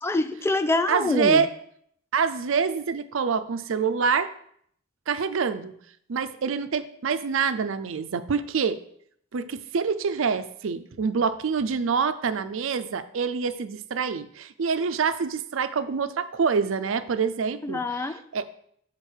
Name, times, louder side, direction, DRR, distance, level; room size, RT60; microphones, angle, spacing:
voice 1, 0.0-1.5 17.6-18.2, left 2 dB, 10° left, 11 dB, 0.3 m, -25 dB
voice 2, 0.9-1.5 2.1-4.3 5.1-5.7 6.1-8.8 9.3-17.8 18.3-18.4, right 5 dB, 65° right, 11 dB, 0.5 m, -26 dB
6.6 x 5.1 x 4.5 m, 0.66 s
head